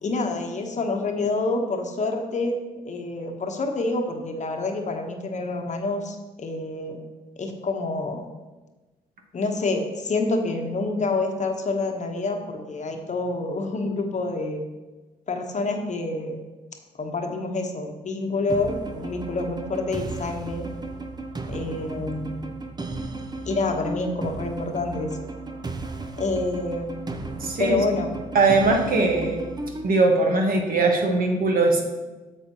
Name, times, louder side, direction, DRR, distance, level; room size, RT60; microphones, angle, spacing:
voice 1, 0.0-2.6 2.8-7.0 7.4-8.3 9.3-14.6 15.3-16.4 17.0-20.7 21.5-22.4 23.4-25.1 26.2-28.1, left 3 dB, 40° left, 4 dB, 1.1 m, -27 dB
sound 1, 18.5-29.9, right 2 dB, 20° right, 0.7 m, -35 dB
voice 2, 27.4-27.8 28.3-29.4 29.8-31.8, right 3 dB, 50° right, 2 dB, 1.4 m, -20 dB
8.0 x 7.2 x 3.0 m, 1.2 s
hypercardioid pair, 50°, 18 cm